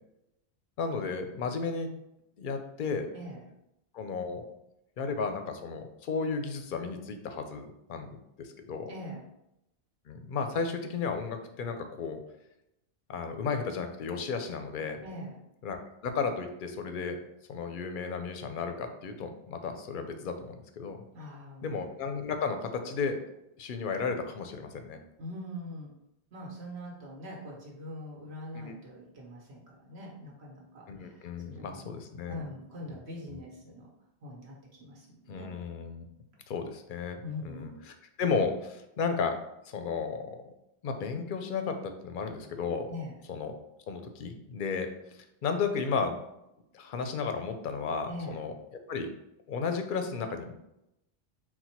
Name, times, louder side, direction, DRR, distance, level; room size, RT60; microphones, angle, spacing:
voice 1, 0.8-1.9 2.4-3.1 3.9-4.4 5.0-8.9 10.1-12.2 13.1-15.0 15.6-17.2 17.5-21.0 21.6-23.2 23.6-25.0 28.5-28.8 30.9-32.4 33.3-33.4 35.3-36.0 36.5-39.4 39.6-40.5 40.8-42.9 43.3-43.5 43.9-44.9 45.4-46.2 46.7-48.5 48.9-49.1 49.5-50.5, left 5 dB, 60° left, 6 dB, 0.6 m, -34 dB
voice 2, 3.1-3.4 8.9-9.2 15.0-15.4 21.1-21.7 25.2-25.9 26.3-31.9 32.3-33.9 34.2-35.5 37.2-37.7 42.9-43.2 48.1-48.4, left 1 dB, 70° right, -2 dB, 1.3 m, -43 dB
4.1 x 2.2 x 4.3 m, 0.85 s
omnidirectional pair, 1.1 m